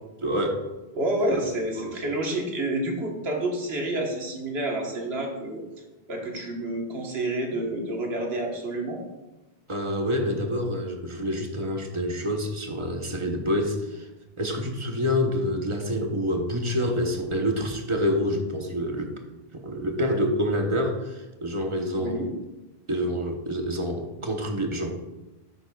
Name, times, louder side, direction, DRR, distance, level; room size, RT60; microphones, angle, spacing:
voice 1, 0.2-0.6 1.8-1.9 7.5-7.6 9.7-14.1 14.4-19.2 19.5-22.2 22.9-25.0, equal, 30° right, 3 dB, 1.0 m, -27 dB
voice 2, 0.9-5.6 6.1-9.0 21.9-22.3, right 1 dB, 75° right, 0 dB, 1.6 m, -29 dB
10.0 x 7.7 x 2.4 m, 1.0 s
omnidirectional pair, 1.1 m